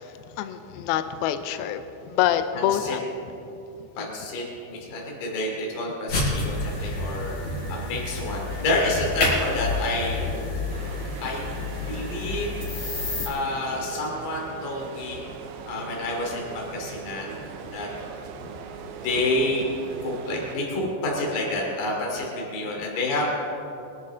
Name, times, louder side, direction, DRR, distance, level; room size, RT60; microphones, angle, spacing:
voice 1, 0.4-1.8 2.1-3.0 4.0-4.1 6.8-6.9 7.7-7.8 10.9-11.0 13.1-13.3 18.4-18.5 20.8-20.9, left 11 dB, 85° left, 9 dB, 2.2 m, -26 dB
voice 2, 4.0-7.4 7.7-10.2 11.2-11.4 11.9-12.5 13.3-15.3 15.6-17.4 17.7-17.9 19.0-19.6 20.0-23.2, left 2 dB, 55° left, -2 dB, 4.0 m, -28 dB
sound 1, 6.1-13.3, left 2 dB, 40° left, 4.9 m, -29 dB
sound 2, 10.7-20.6, right 6 dB, 75° right, 2.5 m, -40 dB
23.5 x 12.0 x 3.8 m, 2.8 s
omnidirectional pair, 5.1 m